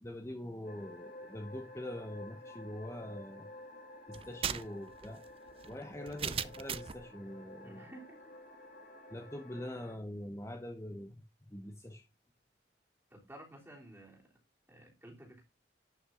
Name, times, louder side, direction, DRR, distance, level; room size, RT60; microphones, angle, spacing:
voice 1, 0.0-3.5 4.1-5.2 5.7-7.9 9.1-12.0, left 1 dB, 15° left, 1.1 m, -44 dB
sound 1, 0.6-10.0, left 1 dB, 50° left, 2.6 m, -51 dB
sound 2, 4.1-7.0, right 8 dB, 35° right, 0.4 m, -39 dB
voice 2, 7.6-8.4 13.1-14.2 14.7-15.4, right 1 dB, 15° right, 3.3 m, -53 dB
11.5 x 6.1 x 3.9 m
head